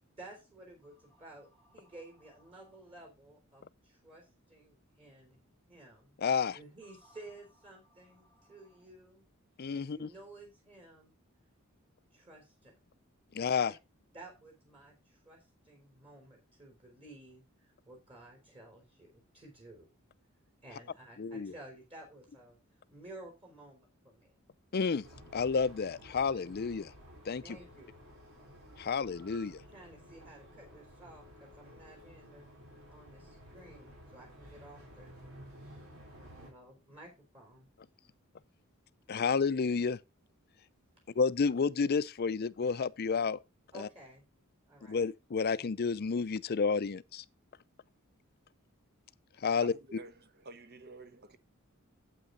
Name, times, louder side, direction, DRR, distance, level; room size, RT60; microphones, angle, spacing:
voice 1, 0.2-5.4 5.7-6.1 6.5-9.3 9.7-11.2 12.1-12.8 13.7-13.8 14.1-19.9 20.6-22.6 22.9-24.3 27.4-28.0 29.5-32.5 32.9-35.2 35.6-35.8 36.4-37.7 43.7-44.2 44.7-45.0, right 2 dB, 25° right, 4.0 m, -54 dB
voice 2, 6.2-6.6 9.6-10.1 13.3-13.7 21.2-21.5 24.7-25.1 25.3-26.9 27.3-27.6 28.8-29.6 39.1-40.0 41.2-43.4 43.7-43.9 44.9-47.2 49.4-50.0, left 5 dB, 50° left, 0.5 m, -30 dB
sound 1, 25.0-36.5, equal, 85° right, 3.7 m, -54 dB
voice 3, 49.6-51.4, right 2 dB, 50° right, 1.2 m, -50 dB
8.7 x 8.4 x 3.9 m
head